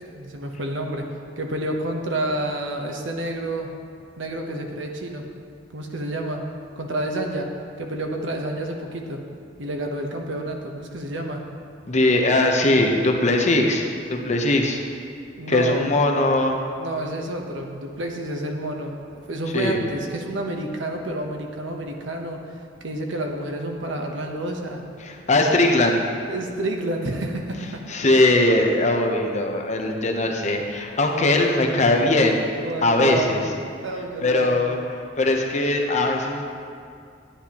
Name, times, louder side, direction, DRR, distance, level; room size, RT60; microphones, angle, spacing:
voice 1, 0.1-3.7 4.2-5.3 5.7-6.4 6.8-7.5 7.8-9.2 9.6-11.4 15.3-15.9 16.8-22.4 22.8-24.8 26.3-27.8 32.6-33.5 33.8-34.6, right 1 dB, 80° right, 2 dB, 1.0 m, -29 dB
voice 2, 11.9-14.8 15.5-16.6 19.5-19.8 25.0-26.0 27.9-32.4 32.8-33.4 34.2-36.4, left 2 dB, 40° left, 2 dB, 0.8 m, -20 dB
10.0 x 9.8 x 3.0 m, 2.3 s
head